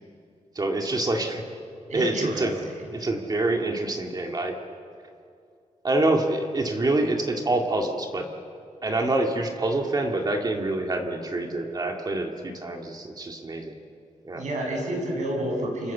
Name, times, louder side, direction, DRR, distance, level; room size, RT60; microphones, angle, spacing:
voice 1, 0.6-1.4 1.9-2.6 2.9-4.6 5.8-8.3 8.8-13.7 14.2-14.4, right 2 dB, 35° right, 2 dB, 2.1 m, -26 dB
voice 2, 1.9-2.5 2.8-2.9 14.3-15.9, right 1 dB, 80° right, 0 dB, 7.6 m, -29 dB
27.5 x 26.0 x 7.3 m, 2.4 s
wide cardioid pair, 170°, 12 cm